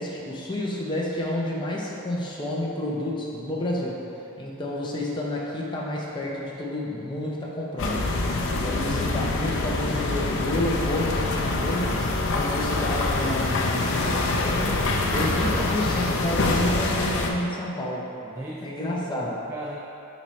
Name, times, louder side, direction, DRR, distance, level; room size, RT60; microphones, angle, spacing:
voice 1, 0.0-4.0 4.4-8.0 8.6-14.8 15.1-18.1 18.6-19.4, left 1 dB, 20° left, -4 dB, 0.7 m, -30 dB
sound 1, 7.8-17.3, left 2 dB, 60° left, 0.6 m, -25 dB
voice 2, 18.2-19.8, right 1 dB, 10° right, -3 dB, 0.3 m, -37 dB
9.0 x 4.0 x 3.2 m, 2.9 s
head